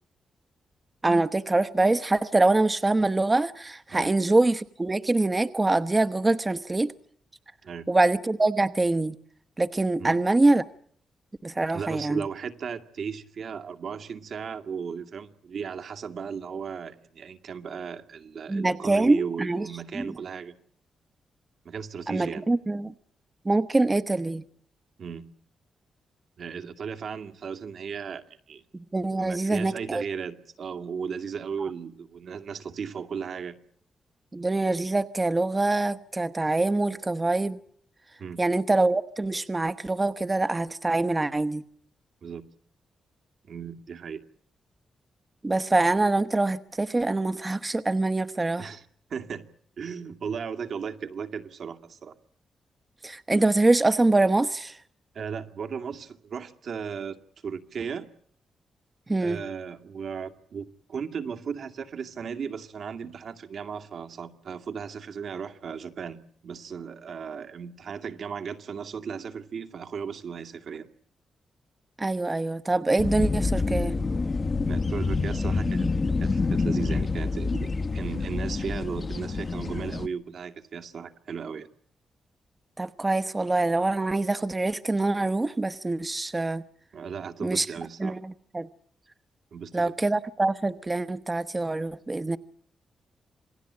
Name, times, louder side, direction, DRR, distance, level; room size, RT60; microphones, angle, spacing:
voice 1, 1.0-6.9 7.9-9.1 9.6-10.6 11.4-12.2 18.5-19.6 22.1-22.9 23.5-24.4 28.9-30.0 34.3-37.6 38.4-41.6 45.4-48.7 53.0-54.7 59.1-59.4 72.0-73.9 82.8-86.6 87.4-87.7 88.0-88.2 88.5-88.7 89.7-92.4, right 2 dB, 25° right, 1.1 m, -24 dB
voice 2, 11.7-20.6 21.6-22.5 25.0-25.3 26.4-28.6 29.2-33.6 38.2-38.4 42.2-42.5 43.4-44.2 48.6-49.5 49.8-52.1 55.1-58.1 59.2-70.9 74.6-81.7 86.9-88.2 89.5-89.9, right 6 dB, 70° right, 2.3 m, -36 dB
sound 1, 73.0-80.1, left 3 dB, 40° left, 1.3 m, -27 dB
27.5 x 19.0 x 8.8 m
cardioid pair, 75°, 0 cm